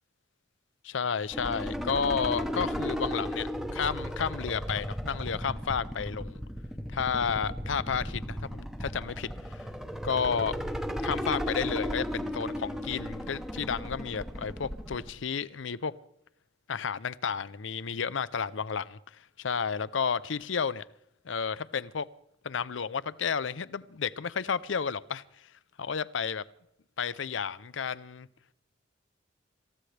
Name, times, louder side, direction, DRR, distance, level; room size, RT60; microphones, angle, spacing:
voice 1, 0.8-6.4 6.9-9.7 10.0-10.6 11.0-15.9 16.7-19.0 19.4-20.8 21.2-22.1 22.4-25.2 25.8-26.4 27.0-28.3, left 6 dB, 75° left, 0.6 m, -32 dB
sound 1, 1.3-15.1, equal, ahead, 0.9 m, -35 dB
26.5 x 14.5 x 3.3 m
head